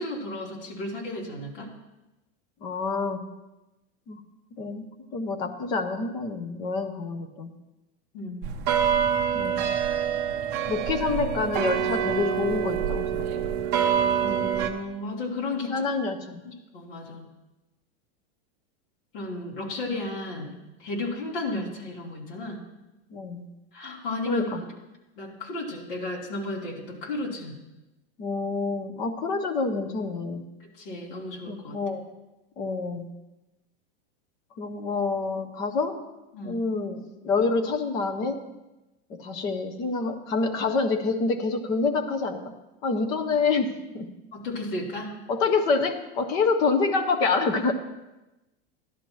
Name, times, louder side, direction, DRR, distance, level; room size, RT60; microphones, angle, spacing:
voice 1, 0.0-1.7 8.1-8.5 10.5-10.6 14.2-15.8 16.4-17.3 19.1-20.5 20.8-22.6 23.7-24.6 25.2-27.6 30.6-31.8 36.3-36.6 44.3-45.2, left 2 dB, 60° left, -3 dB, 3.1 m, -34 dB
voice 2, 2.6-3.3 4.1-4.2 4.5-7.6 9.3-9.7 10.7-13.5 15.7-16.4 23.1-23.5 24.3-24.6 28.2-30.5 31.5-32.1 32.6-33.1 34.6-36.0 36.4-38.4 39.1-42.5 42.8-44.1 45.3-47.7, left 4 dB, 15° left, 7 dB, 0.3 m, -27 dB
sound 1, 8.4-14.7, right 8 dB, 30° right, 0.7 m, -26 dB
14.0 x 11.5 x 3.0 m, 1.0 s
supercardioid pair, 175°, 31 cm